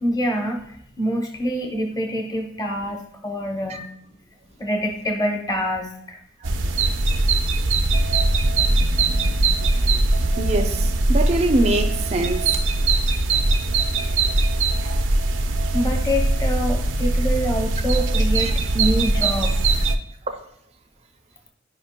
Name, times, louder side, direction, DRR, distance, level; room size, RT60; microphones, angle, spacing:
voice 1, 0.0-3.8 4.6-6.2 14.8-14.9 15.7-19.6, equal, 20° left, 0.8 m, -26 dB
sound 1, 6.4-20.0, right 2 dB, 75° right, 0.6 m, -21 dB
voice 2, 10.4-12.5 18.4-18.5 20.3-20.4, right 2 dB, 35° right, 0.5 m, -23 dB
13.0 x 5.1 x 2.2 m
head